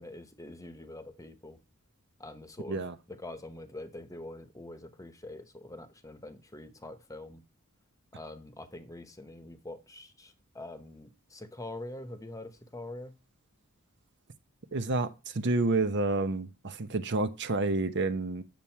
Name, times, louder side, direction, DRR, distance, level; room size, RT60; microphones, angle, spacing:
voice 1, 0.0-1.6 2.2-2.8 3.1-7.4 8.1-13.2, left 2 dB, 15° left, 1.1 m, -44 dB
voice 2, 14.7-18.4, right 3 dB, 55° right, 0.8 m, -29 dB
9.1 x 7.1 x 4.5 m
head